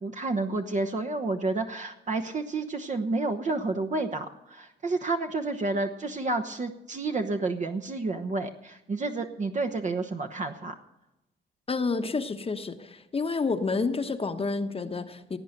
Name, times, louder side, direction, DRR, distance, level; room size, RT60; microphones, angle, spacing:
voice 1, 0.0-10.7, right 3 dB, 40° right, 5 dB, 1.1 m, -30 dB
voice 2, 11.7-15.4, left 4 dB, 30° left, 6 dB, 1.1 m, -29 dB
17.0 x 8.8 x 6.6 m, 0.94 s
cardioid pair, 90°, 20 cm